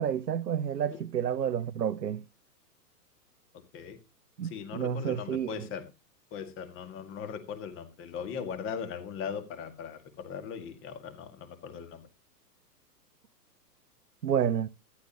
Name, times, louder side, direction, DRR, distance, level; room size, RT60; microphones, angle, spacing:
voice 1, 0.0-2.2 4.4-5.6 14.2-14.7, right 9 dB, 75° right, 0.7 m, -30 dB
voice 2, 4.4-5.9 6.3-12.1, left 7 dB, 25° left, 1.9 m, -39 dB
14.0 x 9.9 x 2.9 m
figure-of-eight pair, 110°, 49 cm